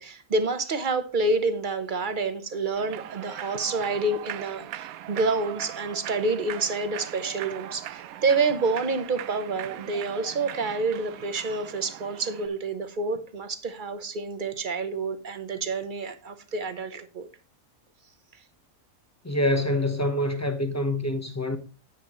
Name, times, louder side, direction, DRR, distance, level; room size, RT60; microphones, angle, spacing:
voice 1, 0.0-17.3, right 3 dB, 40° right, 1.0 m, -28 dB
Human voice / Clapping / Cheering, 2.8-12.5, right 12 dB, 80° right, 1.0 m, -40 dB
voice 2, 19.2-21.6, left 1 dB, 15° left, 1.0 m, -26 dB
10.0 x 9.2 x 3.1 m
omnidirectional pair, 1.5 m